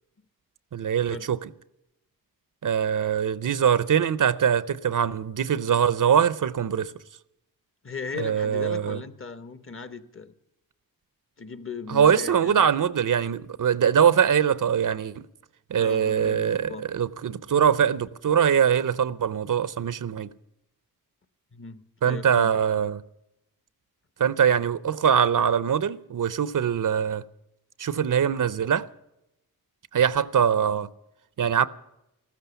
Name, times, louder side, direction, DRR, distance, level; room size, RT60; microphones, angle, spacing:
voice 1, 0.7-1.5 2.6-6.9 8.2-9.0 11.9-15.2 15.7-20.3 22.0-23.0 24.2-27.2 27.8-28.9 29.9-30.9 31.4-31.7, right 8 dB, 60° right, 0.6 m, -22 dB
voice 2, 7.8-10.3 11.4-12.6 15.7-16.8 21.5-22.9, left 4 dB, 35° left, 1.0 m, -38 dB
14.5 x 13.5 x 6.9 m
wide cardioid pair, 105°, 37 cm